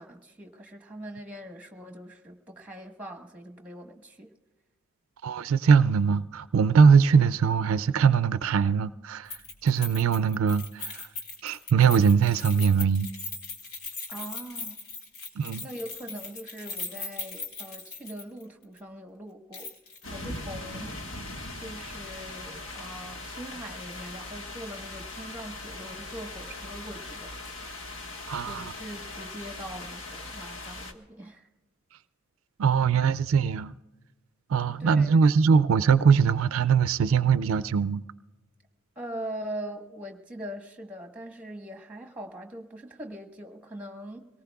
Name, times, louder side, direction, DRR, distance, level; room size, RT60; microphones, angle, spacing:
voice 1, 0.0-4.3 14.1-14.8 15.6-19.7 20.1-20.9 21.6-27.3 28.4-31.5 34.8-35.3 38.9-44.3, right 1 dB, 5° right, 1.3 m, -42 dB
voice 2, 5.2-9.3 9.6-11.1 11.4-13.1 15.4-15.6 28.3-28.7 32.6-33.7 34.5-38.0, right 6 dB, 70° right, 0.4 m, -22 dB
Keys jangling, 9.3-18.5 18.8-18.9 19.5-20.0 20.3-20.4, left 4 dB, 85° left, 2.1 m, -39 dB
sound 1, 20.0-30.9, left 2 dB, 65° left, 1.5 m, -40 dB
25.5 x 18.5 x 2.3 m
head